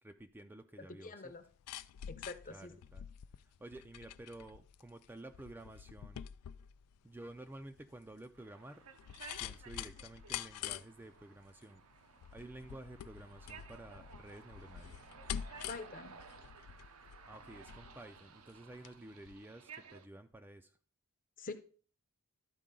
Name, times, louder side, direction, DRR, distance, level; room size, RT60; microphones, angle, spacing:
voice 1, 0.0-1.3 2.5-3.0 3.6-6.2 7.0-8.8 9.4-11.8 12.3-15.1 17.3-20.7, right 1 dB, 10° right, 6 dB, 0.4 m, -52 dB
voice 2, 0.8-1.4 2.1-2.7 15.7-16.2 21.4-21.5, left 3 dB, 40° left, 9 dB, 0.8 m, -45 dB
sound 1, 1.3-19.0 19.3-19.4, left 10 dB, 85° left, 0.3 m, -47 dB
sound 2, 8.4-20.1, right 5 dB, 70° right, 0.7 m, -56 dB
12.0 x 4.6 x 3.7 m, 0.40 s
head